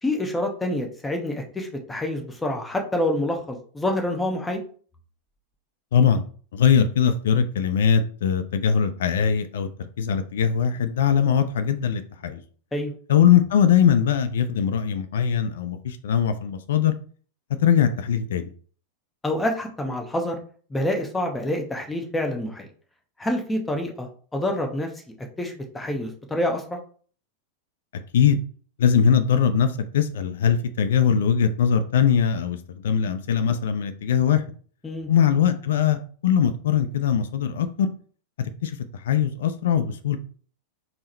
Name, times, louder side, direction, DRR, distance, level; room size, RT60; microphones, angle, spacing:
voice 1, 0.0-4.6 12.7-12.9 19.2-20.4 20.7-22.7 23.2-24.9 25.4-26.8 34.8-35.1, left 1 dB, 10° left, 3 dB, 0.8 m, -27 dB
voice 2, 5.9-6.2 6.5-9.7 10.0-12.4 13.1-16.9 17.6-18.5 28.1-28.4 28.8-32.6 32.8-34.4 35.1-37.9 38.6-38.8 39.0-40.2, left 8 dB, 60° left, 9 dB, 0.4 m, -21 dB
3.6 x 2.1 x 4.2 m, 0.44 s
figure-of-eight pair, 90°, 0 cm